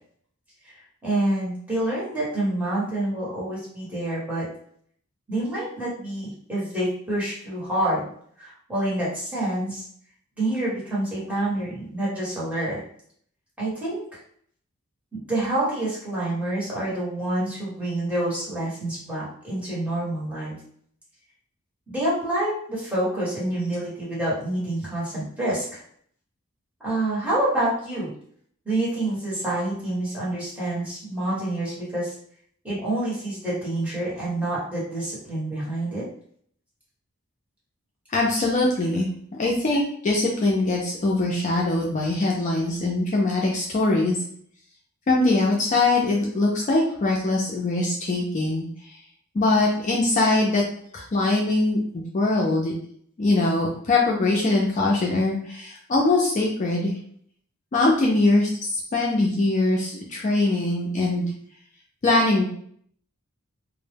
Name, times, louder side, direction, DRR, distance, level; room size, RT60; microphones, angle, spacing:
voice 1, 0.6-4.5 5.3-8.1 8.4-9.8 10.4-12.8 13.6-14.2 15.1-20.6 21.9-25.8 26.8-28.1 28.6-32.1 32.6-36.1, right 1 dB, 5° right, -8 dB, 1.1 m, -27 dB
voice 2, 38.1-39.1 39.4-44.2 45.1-48.7 49.3-50.6 50.9-52.7 53.2-56.9 57.7-61.3 62.0-62.5, left 2 dB, 35° left, -2 dB, 0.4 m, -22 dB
2.1 x 2.0 x 3.3 m, 0.62 s
head